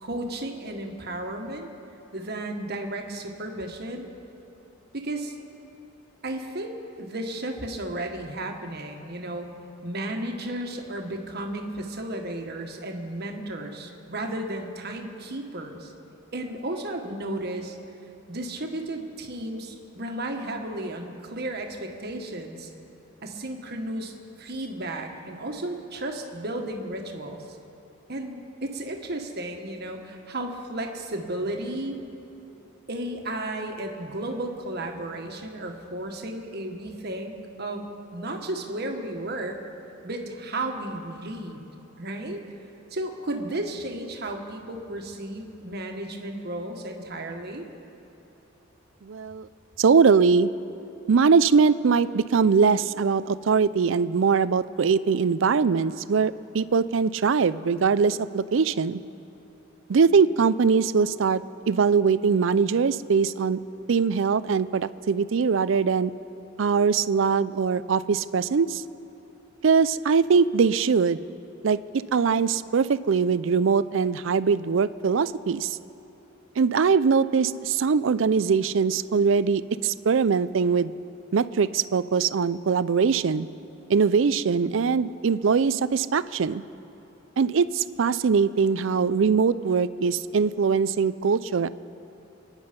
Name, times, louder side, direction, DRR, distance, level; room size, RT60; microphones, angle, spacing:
voice 1, 0.0-1.7 2.1-4.1 5.0-5.3 6.2-9.5 9.8-15.9 16.3-17.8 18.3-22.7 23.2-27.4 28.1-32.0 32.9-37.3 37.6-39.6 40.0-41.7 42.0-42.4 42.9-47.7, right 1 dB, 50° right, 3 dB, 1.6 m, -33 dB
voice 2, 49.0-49.5 49.8-50.5 51.1-59.0 59.9-63.6 63.9-66.1 66.6-68.8 69.6-71.2 71.6-71.8 72.1-75.8 76.6-80.9 81.3-83.5 83.9-86.6 87.4-91.7, right 5 dB, 70° right, 16 dB, 0.4 m, -22 dB
27.5 x 9.9 x 5.3 m, 3.0 s
head